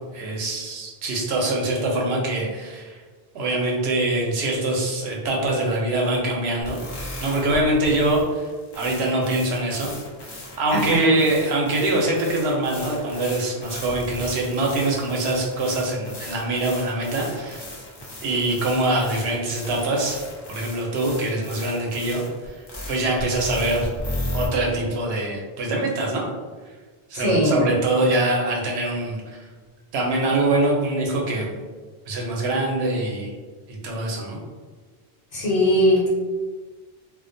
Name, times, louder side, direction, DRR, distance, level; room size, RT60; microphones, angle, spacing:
voice 1, 0.1-3.0 3.3-6.8 7.2-8.5 8.8-9.9 10.2-10.3 10.6-17.7 18.2-20.2 20.5-23.9 24.3-26.2 27.1-29.5 29.9-31.5 32.1-33.3 33.7-34.4, right 2 dB, 90° right, -1 dB, 0.9 m, -24 dB
sound 1, 6.6-24.5, left 1 dB, 35° left, 0.4 m, -36 dB
voice 2, 10.7-11.1 27.1-27.7 35.3-36.1, equal, 65° left, -6 dB, 1.0 m, -20 dB
2.4 x 2.1 x 2.5 m, 1.4 s
omnidirectional pair, 1.0 m